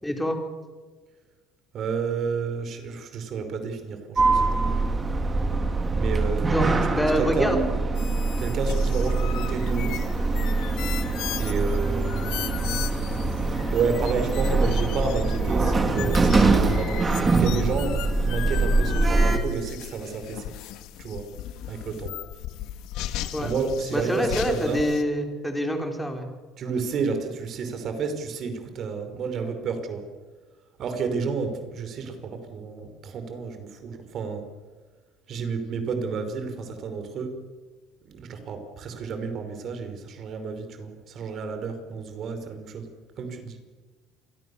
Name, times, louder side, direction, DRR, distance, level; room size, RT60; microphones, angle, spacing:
voice 1, 0.0-0.4 6.4-7.6 23.3-23.5 23.9-26.3, equal, 5° left, 4 dB, 4.4 m, -26 dB
voice 2, 1.7-4.8 5.9-7.6 8.4-10.1 11.4-12.6 13.7-20.5 21.0-21.3 21.7-22.2 23.4-24.8 26.6-30.0 30.8-34.5 35.3-37.4 38.0-42.9 43.2-43.6, right 5 dB, 45° right, 7 dB, 5.1 m, -31 dB
Sliding door, 4.2-19.4, right 3 dB, 20° right, 3.1 m, -23 dB
sound 1, 8.0-25.0, left 13 dB, 70° left, 1.8 m, -37 dB
28.5 x 23.0 x 7.1 m, 1.4 s
cardioid pair, 130°, 0 cm